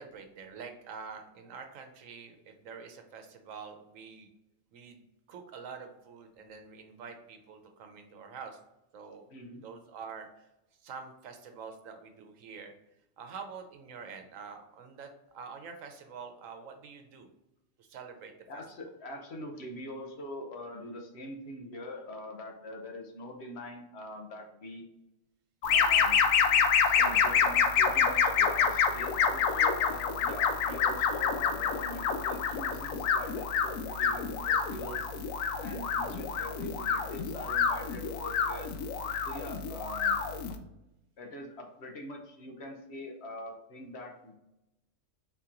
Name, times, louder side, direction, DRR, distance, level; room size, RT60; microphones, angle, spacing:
voice 1, 0.0-4.3 4.7-5.0 5.3-8.6 8.9-9.3 9.6-10.3 10.8-12.7 13.2-17.3 17.8-18.6 35.9-36.1, right 5 dB, 80° right, 5 dB, 1.1 m, -46 dB
voice 2, 9.3-9.6 18.5-24.9 25.7-26.2 26.5-35.1 35.6-38.7 39.2-40.2 41.2-44.4, left 1 dB, 60° left, 2 dB, 1.1 m, -43 dB
sound 1, 25.6-40.6, left 6 dB, 90° left, 1.0 m, -27 dB
4.3 x 2.9 x 3.7 m, 0.89 s
omnidirectional pair, 1.3 m